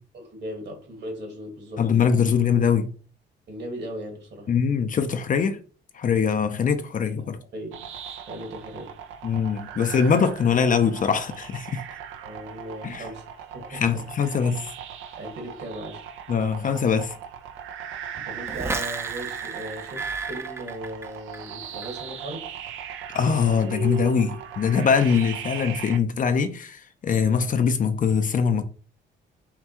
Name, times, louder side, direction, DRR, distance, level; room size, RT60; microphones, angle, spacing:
voice 1, 0.1-1.9 3.5-4.5 7.2-7.9 8.2-9.0 12.2-14.3 15.2-16.1 17.9-22.5, equal, 60° right, 1.7 m, -38 dB
voice 2, 1.8-2.9 4.5-5.6 5.9-7.4 9.2-11.8 12.8-13.0 13.7-14.7 16.3-17.2 23.1-28.6, left 6 dB, 40° left, 0.5 m, -22 dB
sound 1, 7.7-26.0, right 8 dB, 85° right, 0.6 m, -38 dB
sound 2, 18.5-21.5 21.8-22.3, right 3 dB, 15° right, 0.5 m, -34 dB
5.7 x 2.3 x 2.9 m
cardioid pair, 90°, 20 cm